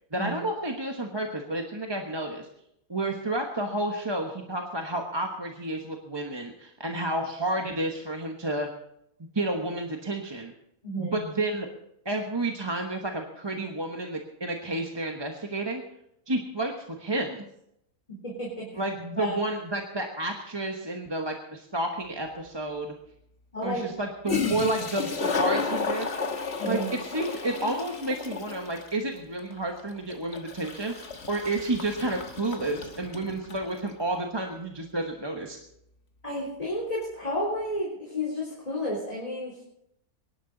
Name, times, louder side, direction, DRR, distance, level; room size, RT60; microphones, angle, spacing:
voice 1, 0.1-2.5 2.9-8.7 9.3-10.5 11.0-11.7 12.0-15.8 16.3-17.4 18.7-22.9 23.6-26.1 26.6-35.6, right 2 dB, 20° right, 2 dB, 1.1 m, -31 dB
voice 2, 10.8-11.2 18.1-18.8 19.2-19.4 23.5-23.8 26.6-26.9 36.2-39.6, left 1 dB, 25° left, -5 dB, 3.7 m, -32 dB
Toilet flush, 22.2-22.3 24.0-24.1 24.3-33.7, left 4 dB, 45° left, 1.6 m, -32 dB
23.5 x 11.5 x 3.9 m, 0.77 s
omnidirectional pair, 1.5 m